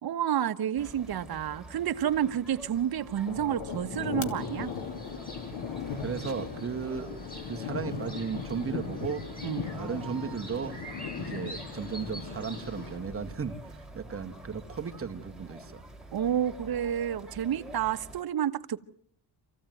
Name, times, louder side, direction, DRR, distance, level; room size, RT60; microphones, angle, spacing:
voice 1, 0.0-4.7 9.4-9.6 16.1-18.8, right 10 dB, 55° right, 1.3 m, -30 dB
sound 1, 0.7-18.2, right 1 dB, ahead, 3.3 m, -48 dB
sound 2, 3.3-13.1, left 6 dB, 90° left, 2.9 m, -38 dB
sound 3, 4.4-13.0, equal, 20° left, 6.3 m, -47 dB
voice 2, 6.0-7.1 7.5-9.3 9.7-10.8 11.2-15.8, right 6 dB, 30° right, 2.0 m, -35 dB
27.5 x 15.5 x 9.3 m
cardioid pair, 125°, 42 cm